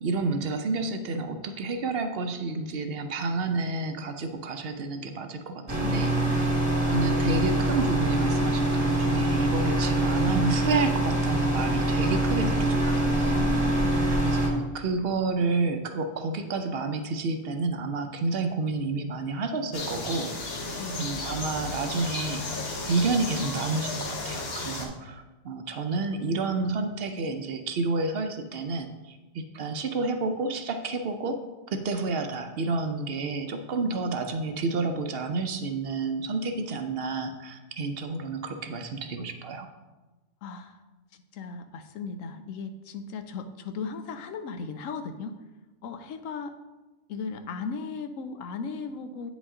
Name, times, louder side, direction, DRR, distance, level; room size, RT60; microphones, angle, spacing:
voice 1, 0.0-6.4 6.8-13.5 14.2-20.6 21.0-39.7, right 3 dB, 60° right, 7 dB, 0.7 m, -30 dB
sound 1, 5.7-14.5, right 1 dB, 15° right, 1.2 m, -24 dB
voice 2, 5.8-6.6 13.3-14.2 20.8-21.1 40.4-40.8 41.3-45.3 45.8-46.5 47.1-49.3, left 5 dB, 85° left, 8 dB, 1.0 m, -37 dB
sound 2, 19.7-24.9, left 2 dB, 50° left, 1.1 m, -34 dB
9.1 x 5.2 x 3.7 m, 1.1 s
omnidirectional pair, 1.4 m